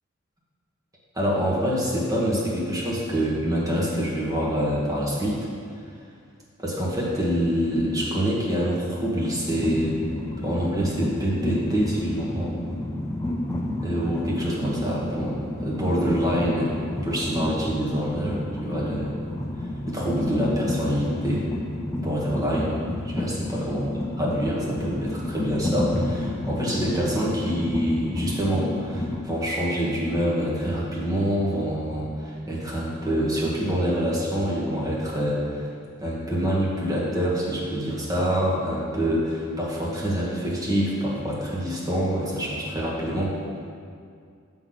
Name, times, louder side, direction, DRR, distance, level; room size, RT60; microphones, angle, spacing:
voice 1, 1.1-5.4 6.6-10.0 10.4-12.6 13.8-16.7 17.0-19.1 19.9-21.5 21.9-22.7 23.1-35.7 36.0-43.4, equal, 15° right, -6 dB, 1.4 m, -26 dB
Train, 9.5-29.2, left 1 dB, 15° left, 0.4 m, -30 dB
6.9 x 3.9 x 5.9 m, 2.3 s
head